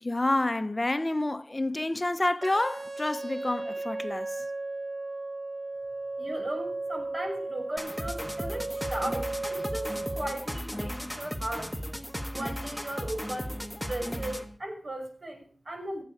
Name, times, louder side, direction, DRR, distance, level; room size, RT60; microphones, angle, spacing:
voice 1, 0.0-4.4, left 2 dB, 35° left, 0.9 m, -28 dB
sound 1, 2.4-10.4, right 2 dB, 70° right, 0.8 m, -35 dB
voice 2, 6.2-11.7 12.3-13.6 13.9-16.0, right 1 dB, 50° right, 5.9 m, -37 dB
sound 2, 7.8-14.6, equal, ahead, 1.5 m, -36 dB
16.5 x 8.5 x 4.9 m
wide cardioid pair, 65°, 0 cm